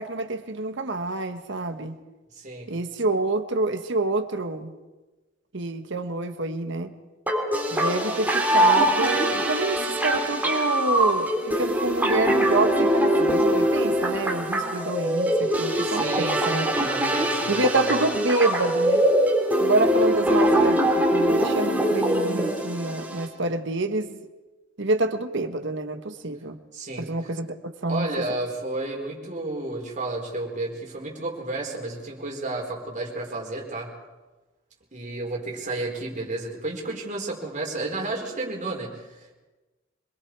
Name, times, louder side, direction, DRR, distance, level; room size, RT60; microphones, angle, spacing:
voice 1, 0.0-1.9 2.7-4.7 5.5-6.9 7.7-16.7 17.5-19.0 19.6-24.2 24.8-26.6 27.0-28.1, right 2 dB, 65° right, 8 dB, 1.5 m, -27 dB
voice 2, 2.4-2.7 15.8-16.4 16.7-18.0 26.7-27.3 27.9-33.9 34.9-39.3, right 2 dB, 40° right, -1 dB, 4.6 m, -32 dB
sound 1, 7.3-23.3, right 1 dB, 10° right, 3.7 m, -23 dB
25.5 x 22.5 x 4.8 m, 1.2 s
head